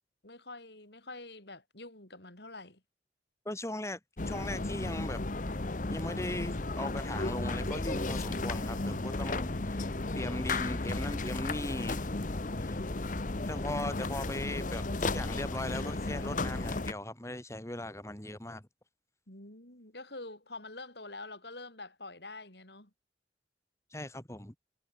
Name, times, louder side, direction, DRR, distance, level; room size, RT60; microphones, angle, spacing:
voice 1, 0.2-2.8 19.3-22.9, left 2 dB, 65° left, 6.8 m, -46 dB
voice 2, 3.5-4.0 4.3-5.2 5.9-9.8 10.1-12.1 12.6-12.8 13.5-18.6 23.9-24.5, left 1 dB, 15° left, 2.4 m, -39 dB
sound 1, 4.2-16.9, left 2 dB, 45° left, 1.0 m, -34 dB
sound 2, 7.0-13.5, right 1 dB, 50° right, 1.6 m, -48 dB
head